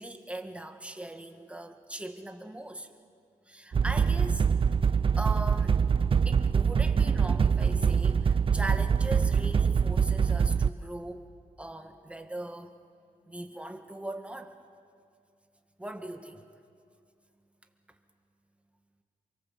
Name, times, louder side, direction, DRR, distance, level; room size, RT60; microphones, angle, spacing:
voice 1, 0.0-2.9 3.5-4.5 5.2-5.8 6.3-11.3 11.6-12.8 13.3-14.5 15.8-16.4, right 1 dB, 10° right, 6 dB, 1.9 m, -39 dB
sound 1, 3.7-10.7, right 6 dB, 40° right, 0.5 m, -24 dB
27.5 x 24.0 x 7.7 m, 2.3 s
cardioid pair, 95°, 14 cm